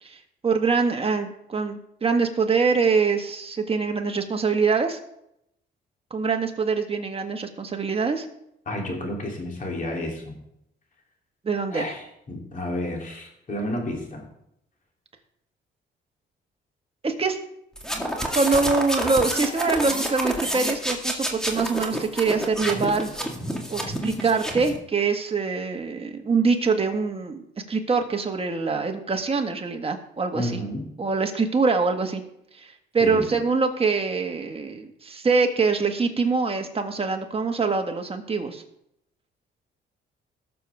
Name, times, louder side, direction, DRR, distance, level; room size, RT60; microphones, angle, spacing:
voice 1, 0.0-5.0 6.1-8.3 11.4-11.9 17.0-17.4 18.3-23.1 23.7-27.4 27.7-30.6 31.0-32.2 32.6-38.6, right 4 dB, 30° right, 4 dB, 1.7 m, -24 dB
voice 2, 8.7-10.4 11.7-14.3 30.3-30.9 33.0-33.3, left 1 dB, 40° left, 0 dB, 3.2 m, -31 dB
sound 1, 17.8-24.8, equal, 5° left, 2.0 m, -28 dB
18.5 x 7.0 x 3.5 m, 0.78 s
cardioid pair, 90°, 20 cm